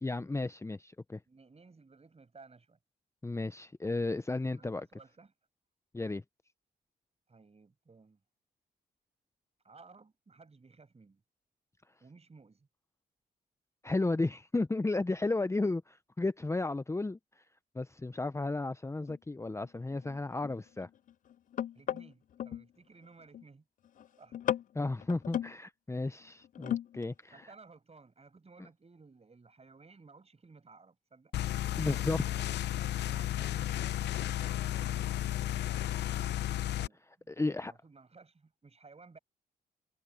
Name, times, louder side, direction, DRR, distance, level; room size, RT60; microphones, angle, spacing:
voice 1, 0.0-1.2 3.2-4.9 5.9-6.2 13.8-17.2 17.7-20.9 24.7-27.5 31.8-32.5 37.3-37.7, left 2 dB, 15° left, 0.8 m, -33 dB
voice 2, 1.3-2.8 4.4-5.3 7.3-8.2 9.6-11.2 12.0-12.7 21.7-23.7 24.2-24.4 27.3-31.3 32.0-32.5 33.0-35.6 36.3-39.2, right 4 dB, 35° right, 7.9 m, -57 dB
sound 1, 19.1-19.2 19.6-22.7 23.0-23.4 23.8-24.1 24.3-25.5 26.4-27.1 27.4-27.5, left 10 dB, 45° left, 0.4 m, -36 dB
sound 2, 31.3-36.9, left 13 dB, 70° left, 0.8 m, -33 dB
supercardioid pair, 55°, 18 cm